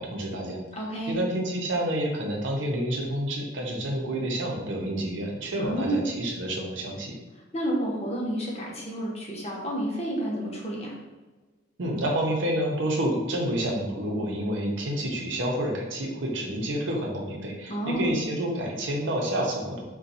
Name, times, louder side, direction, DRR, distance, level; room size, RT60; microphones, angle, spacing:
voice 1, 0.0-0.6 1.1-7.1 11.8-19.8, right 1 dB, 80° right, 0 dB, 0.6 m, -29 dB
voice 2, 0.7-1.2 5.6-6.0 7.5-10.9 17.7-18.1, right 1 dB, 35° left, -3 dB, 0.7 m, -30 dB
2.5 x 2.2 x 4.0 m, 1.2 s
head